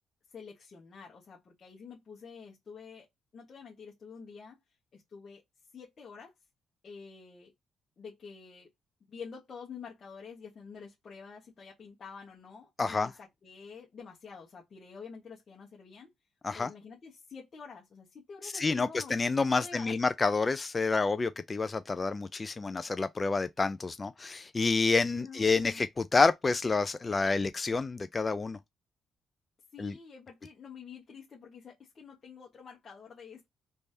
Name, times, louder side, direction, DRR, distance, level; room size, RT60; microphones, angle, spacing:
voice 1, 0.3-3.1 3.3-4.6 4.9-5.4 5.7-6.3 6.8-7.5 8.0-8.7 9.1-16.1 16.5-19.2 19.6-20.0 25.2-25.9 29.7-33.5, left 5 dB, 45° left, 1.1 m, -48 dB
voice 2, 12.8-13.1 16.4-16.7 18.4-28.6 29.8-29.9, left 4 dB, 30° left, 0.3 m, -28 dB
3.3 x 3.3 x 2.7 m
cardioid pair, 90°, 0 cm